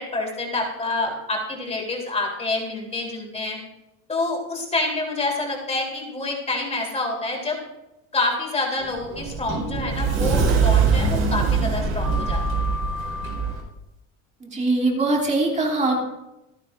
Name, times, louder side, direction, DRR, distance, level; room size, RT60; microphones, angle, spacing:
voice 1, 0.0-3.6 4.1-7.6 8.1-12.4, left 2 dB, 20° left, 0 dB, 3.3 m, -27 dB
Sliding door, 8.8-13.6, right 5 dB, 45° right, 4.5 m, -22 dB
voice 2, 14.4-16.0, right 2 dB, 20° right, -1 dB, 2.8 m, -22 dB
27.0 x 9.6 x 2.5 m, 0.93 s
cardioid pair, 150°, 33 cm